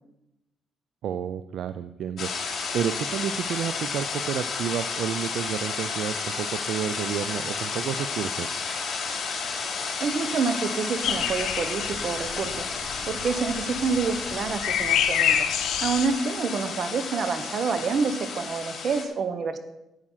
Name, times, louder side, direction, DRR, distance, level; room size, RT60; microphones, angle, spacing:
voice 1, 1.0-2.3 2.7-8.5, right 9 dB, 75° right, 11 dB, 0.4 m, -30 dB
sound 1, 2.2-19.0, left 5 dB, 55° left, 4.0 m, -32 dB
voice 2, 10.0-12.7 13.0-15.5 15.8-19.6, right 5 dB, 55° right, 10 dB, 1.2 m, -28 dB
sound 2, 11.0-16.1, left 9 dB, 80° left, 0.9 m, -27 dB
11.0 x 8.7 x 5.7 m, 0.92 s
cardioid pair, 90°, 0 cm